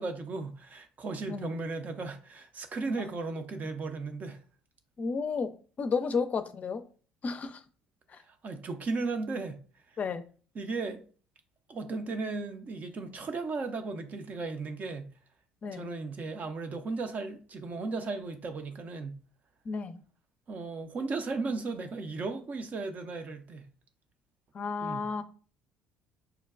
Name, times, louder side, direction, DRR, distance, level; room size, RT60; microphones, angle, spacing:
voice 1, 0.0-4.4 8.3-9.6 10.6-11.0 11.7-15.1 15.7-19.2 20.5-23.6 24.8-25.1, right 3 dB, 45° right, 0.6 m, -35 dB
voice 2, 5.0-6.8 7.2-7.6 8.1-8.2 10.0-10.2 15.6-15.9 19.6-20.0 24.5-25.2, left 5 dB, 40° left, 0.5 m, -32 dB
5.6 x 2.2 x 2.4 m
supercardioid pair, 80°, 4 cm